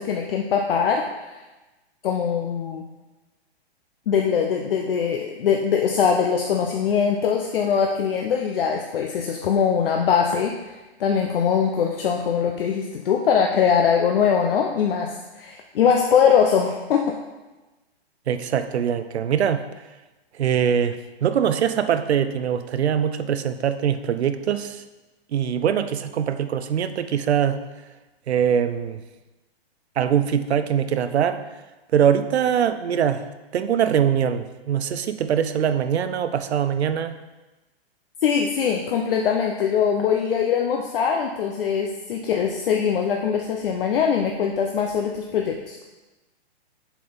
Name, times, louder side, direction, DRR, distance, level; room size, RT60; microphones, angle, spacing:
voice 1, 0.0-1.4 2.0-2.9 4.1-17.2 38.2-45.8, left 7 dB, 60° left, 2 dB, 0.8 m, -22 dB
voice 2, 18.3-19.7 20.4-24.8 25.3-27.6 28.3-29.0 30.0-31.4 31.9-33.3 33.5-37.2, right 8 dB, 85° right, 11 dB, 0.7 m, -22 dB
7.2 x 4.5 x 5.1 m, 1.1 s
hypercardioid pair, 160°, 32 cm